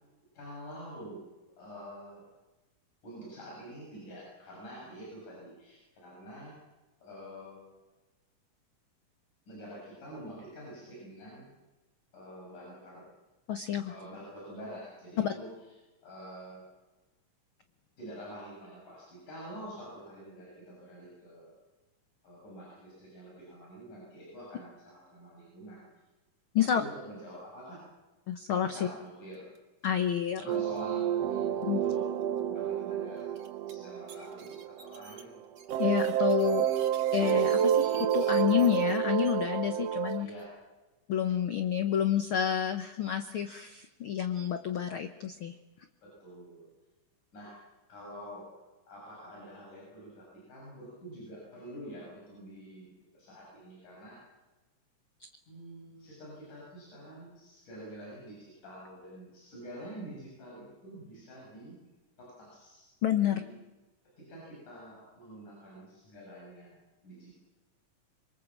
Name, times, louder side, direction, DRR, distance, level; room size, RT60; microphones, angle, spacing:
voice 1, 0.3-1.2 1.6-2.2 3.0-6.6 7.0-7.8 9.5-11.5 12.1-13.1 13.9-15.5 16.0-16.6 18.0-21.5 22.2-25.9 26.7-27.8 28.6-29.5 30.4-33.4 33.7-35.4 40.2-40.5 46.0-46.7 47.3-47.6 47.9-48.5 48.9-54.2 55.5-61.8 62.2-63.5 64.2-66.8 67.0-67.4, equal, 70° left, -4 dB, 8.6 m, -47 dB
voice 2, 13.5-13.9 15.2-15.3 26.5-26.8 28.3-28.8 29.8-30.4 31.6-31.8 35.8-36.7 37.1-40.3 41.1-45.6 55.2-55.3 63.0-63.4, left 9 dB, 90° left, 8 dB, 1.1 m, -29 dB
sound 1, 29.3-29.6 29.8-29.9 30.5-30.8 31.6-31.7 32.2-32.3 33.2-33.7 34.1-39.3 40.1-40.4, right 5 dB, 50° right, 3.1 m, -51 dB
sound 2, 30.5-35.3 35.7-40.2, right 9 dB, 65° right, 1.6 m, -29 dB
26.0 x 23.0 x 7.4 m, 1.1 s
omnidirectional pair, 3.8 m